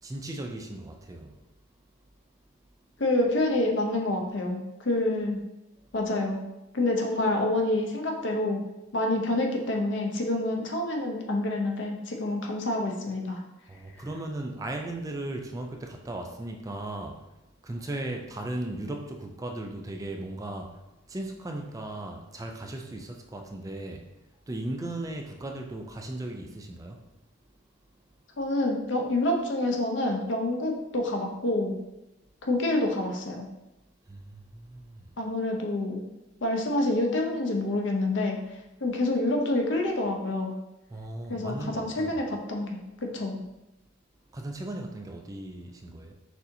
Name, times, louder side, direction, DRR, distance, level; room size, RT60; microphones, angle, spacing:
voice 1, 0.0-1.4 13.7-17.2 17.6-20.8 21.1-24.0 24.5-27.0 34.1-35.1 40.9-42.2 44.3-46.1, right 1 dB, 15° right, 3 dB, 0.3 m, -37 dB
voice 2, 3.0-5.4 5.9-6.4 6.7-8.6 8.9-13.4 28.4-31.8 32.4-33.5 35.2-36.1 36.4-38.4 38.8-40.5 41.3-42.8 43.1-43.4, left 2 dB, 65° left, 2 dB, 0.7 m, -27 dB
6.1 x 2.7 x 2.7 m, 0.97 s
head